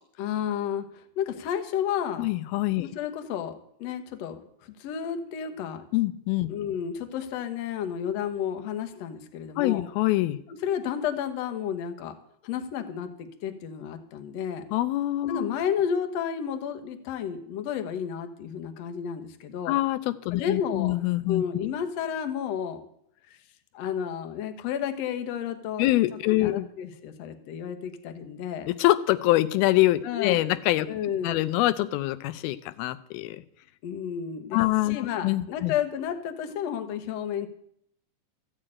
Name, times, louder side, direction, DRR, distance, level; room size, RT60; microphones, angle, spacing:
voice 1, 0.2-2.3 2.8-5.8 6.5-9.9 10.5-12.2 12.4-14.6 15.3-19.8 20.3-21.0 21.3-22.8 23.3-23.4 23.7-25.9 26.3-28.7 30.0-30.5 30.9-31.4 33.8-34.6 34.9-37.5, left 8 dB, 65° left, 7 dB, 1.7 m, -31 dB
voice 2, 2.2-2.9 5.9-6.5 9.6-10.4 14.7-15.5 19.7-21.4 25.8-26.7 28.7-30.9 31.2-33.4 34.5-35.7, left 17 dB, 90° left, 13 dB, 2.5 m, -25 dB
14.0 x 6.5 x 8.7 m, 0.71 s
omnidirectional pair, 4.3 m